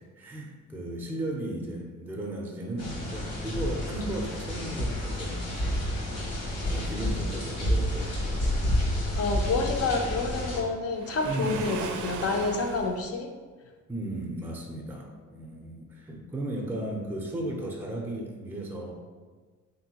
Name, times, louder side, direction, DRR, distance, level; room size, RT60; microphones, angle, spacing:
voice 1, 0.2-5.9 6.6-8.1 8.4-8.7 11.2-11.7 13.9-18.9, right 1 dB, 5° right, 0 dB, 0.5 m, -35 dB
sound 1, 2.8-10.6, left 1 dB, 75° left, 1.0 m, -30 dB
voice 2, 9.2-13.3, left 3 dB, 50° left, 4 dB, 0.5 m, -28 dB
Waves surf, 10.9-13.0, right 5 dB, 75° right, 0.4 m, -37 dB
3.5 x 2.6 x 2.8 m, 1.4 s
cardioid pair, 90°, 30 cm